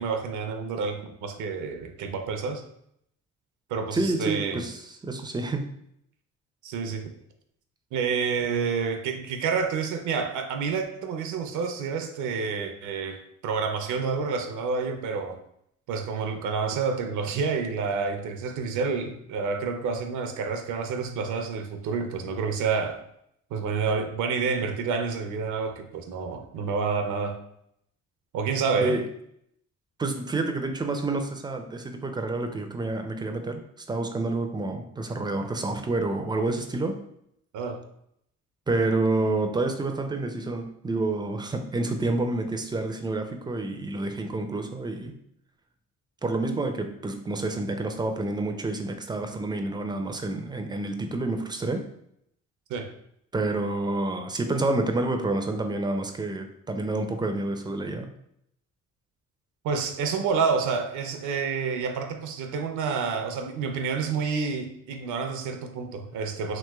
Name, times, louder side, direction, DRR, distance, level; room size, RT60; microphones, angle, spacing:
voice 1, 0.0-2.6 3.7-4.6 6.6-7.1 7.9-13.2 13.4-15.4 15.9-23.0 23.5-27.4 28.3-29.0 37.5-37.8 52.7-52.9 59.6-66.6, right 5 dB, 75° right, 5 dB, 0.5 m, -29 dB
voice 2, 3.9-5.6 28.8-29.0 30.0-33.6 33.9-37.0 38.7-45.1 46.2-51.8 53.3-58.1, right 2 dB, 15° right, 6 dB, 0.3 m, -28 dB
3.0 x 3.0 x 2.2 m, 0.74 s
cardioid pair, 90°, 30 cm